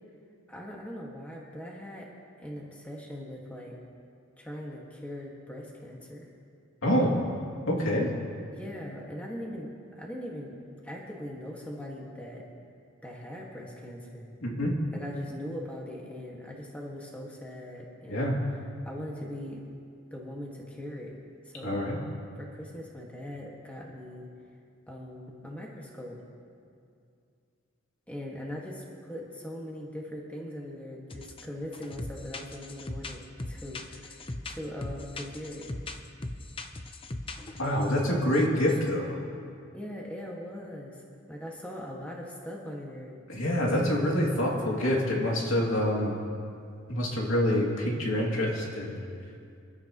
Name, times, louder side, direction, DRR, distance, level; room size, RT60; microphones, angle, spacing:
voice 1, 0.5-2.1 2.4-3.8 4.4-6.3 8.5-12.4 13.0-14.3 14.9-18.4 18.8-19.6 20.1-21.2 21.4-21.9 22.3-24.3 24.9-26.2 28.1-34.2 34.5-36.0 39.7-43.2, left 1 dB, 5° left, -3 dB, 1.7 m, -41 dB
voice 2, 6.8-7.2 7.7-8.1 14.4-14.7 18.1-18.4 21.6-22.0 37.6-39.2 43.3-46.1 46.9-49.0, equal, 80° left, -2 dB, 2.6 m, -26 dB
sound 1, 31.1-31.5 31.7-38.0 38.3-38.9, left 2 dB, 25° left, 0.6 m, -39 dB
27.0 x 12.0 x 3.0 m, 2.4 s
head